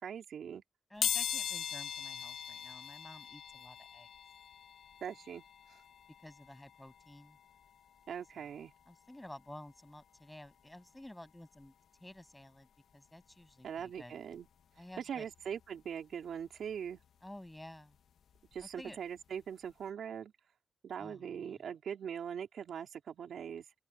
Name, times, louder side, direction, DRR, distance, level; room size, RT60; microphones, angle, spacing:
voice 1, 0.0-0.6 5.0-5.4 5.7-5.8 8.1-8.7 13.6-14.5 15.0-17.0 18.5-20.3 20.8-23.6, right 8 dB, 80° right, 4.0 m, -41 dB
voice 2, 0.9-4.1 6.2-7.4 8.3-8.5 8.9-11.7 12.0-14.2 14.8-15.3 17.2-18.0 18.6-19.0 21.0-21.6, left 1 dB, 10° left, 7.8 m, -52 dB
sound 1, 1.0-11.7 12.2-12.3 13.4-13.5 13.8-15.9 16.2-18.9 19.2-19.4 19.7-19.8, left 9 dB, 80° left, 1.4 m, -42 dB
open air
cardioid pair, 90°, 0 cm